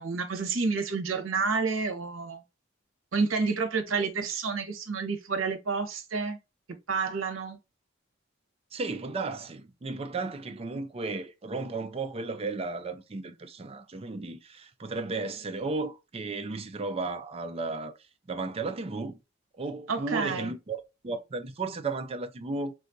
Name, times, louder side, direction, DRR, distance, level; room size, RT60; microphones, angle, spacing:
voice 1, 0.0-2.4 3.1-6.4 6.9-7.6 19.9-20.5, right 4 dB, 80° right, 0.8 m, -29 dB
voice 2, 8.7-17.9 18.3-19.2 19.6-22.7, right 3 dB, 30° right, 0.4 m, -34 dB
3.7 x 2.4 x 2.6 m
head